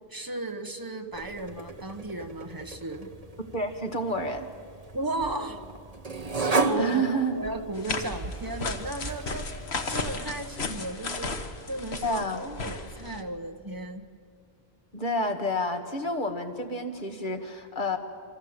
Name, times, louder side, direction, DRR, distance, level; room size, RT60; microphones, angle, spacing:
voice 1, 0.1-3.1 4.9-5.6 6.6-9.5 9.9-11.4 11.7-14.0, right 2 dB, 20° right, 5 dB, 1.4 m, -35 dB
sound 1, 1.1-9.8, right 3 dB, 35° right, 1.4 m, -34 dB
voice 2, 3.5-4.5 6.8-7.4 12.0-12.4 14.9-18.0, equal, 45° left, 4 dB, 2.2 m, -29 dB
sound 2, 7.7-13.2, left 3 dB, 70° left, 1.7 m, -35 dB
28.0 x 24.5 x 8.0 m, 2.3 s
omnidirectional pair, 1.1 m